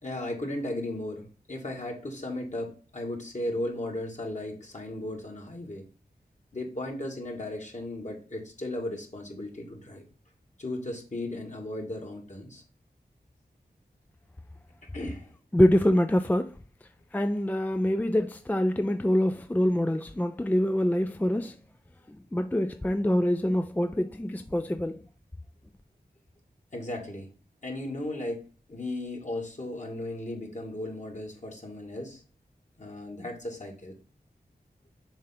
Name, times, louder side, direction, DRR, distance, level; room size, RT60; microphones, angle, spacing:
voice 1, 0.0-5.9 6.5-10.0 10.6-12.6 14.9-15.3 26.7-27.3 27.6-32.2 32.8-34.0, left 1 dB, 45° left, 2.0 m, -36 dB
voice 2, 15.5-16.6 17.1-21.6 22.3-25.0, left 1 dB, 10° left, 0.4 m, -25 dB
7.1 x 3.3 x 5.7 m
wide cardioid pair, 60°, 17 cm